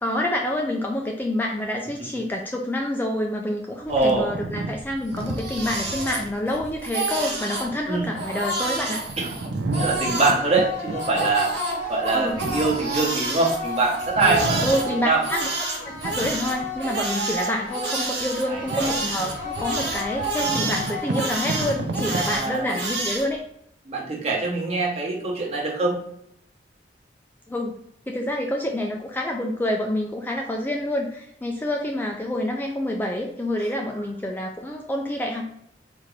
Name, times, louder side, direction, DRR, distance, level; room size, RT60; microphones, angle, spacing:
voice 1, 0.0-9.0 12.1-12.4 14.6-15.5 15.8-23.4 27.5-27.8 28.1-35.4, left 1 dB, 10° left, 1 dB, 0.3 m, -27 dB
sound 1, 3.8-13.6 14.0-15.4 15.9-17.2 17.7-17.8 18.2-23.3, right 2 dB, 90° right, 0.5 m, -33 dB
voice 2, 3.9-4.3 7.9-8.1 9.2-9.3 9.7-11.5 11.9-14.8 15.0-15.2 18.5-18.9 22.1-22.8 23.9-26.0, right 3 dB, 35° right, -3 dB, 1.0 m, -24 dB
Crying sobbing, 5.1-6.6 6.8-7.7 8.1-10.4 11.0-14.8 15.2-23.2, right 2 dB, 65° right, 1.0 m, -29 dB
sound 2, 10.2-22.2, right 1 dB, 45° left, 0.7 m, -34 dB
4.3 x 2.5 x 3.1 m, 0.73 s
head